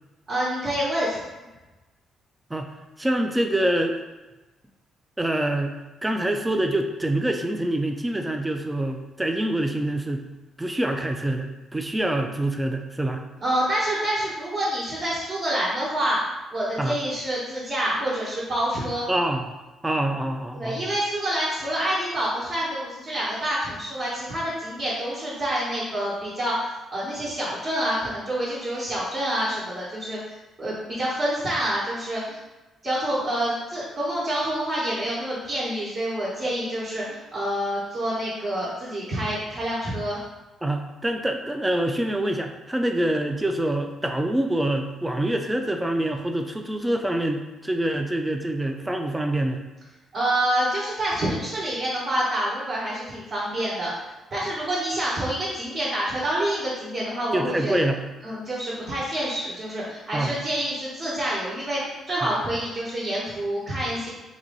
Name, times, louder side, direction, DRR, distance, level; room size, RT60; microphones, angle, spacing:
voice 1, 0.3-1.2 13.4-16.2 16.5-19.0 20.5-30.2 30.6-32.4 32.8-40.2 50.1-53.9 54.3-57.7 58.2-61.8 62.1-64.1, right 1 dB, 45° right, -9 dB, 1.1 m, -27 dB
voice 2, 2.5-4.0 5.2-10.3 10.6-13.2 16.8-17.0 19.1-19.4 19.8-20.9 36.5-36.6 40.6-49.6 57.3-58.0 60.1-60.4 62.2-62.3, right 1 dB, 10° right, 5 dB, 0.3 m, -26 dB
3.0 x 2.6 x 3.9 m, 1.1 s
cardioid pair, 90°, 0 cm